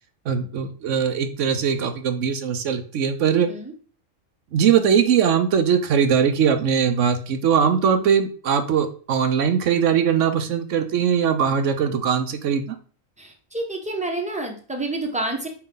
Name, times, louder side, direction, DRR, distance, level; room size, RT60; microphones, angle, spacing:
voice 1, 0.3-3.5 4.5-12.8, right 7 dB, 70° right, 9 dB, 1.0 m, -21 dB
voice 2, 13.2-15.5, right 2 dB, 5° right, 2 dB, 1.0 m, -29 dB
8.6 x 3.4 x 3.8 m, 0.41 s
omnidirectional pair, 1.3 m